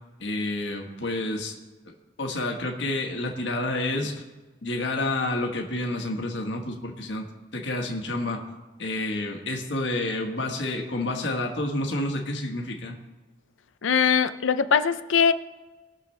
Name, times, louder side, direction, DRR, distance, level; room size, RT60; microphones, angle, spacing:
voice 1, 0.2-1.5 2.2-4.2 4.6-7.2 7.5-8.4 8.8-12.9, left 2 dB, 70° left, 2 dB, 1.6 m, -29 dB
voice 2, 13.8-15.3, left 6 dB, 85° left, 11 dB, 0.6 m, -21 dB
20.0 x 7.0 x 3.4 m, 1.2 s
head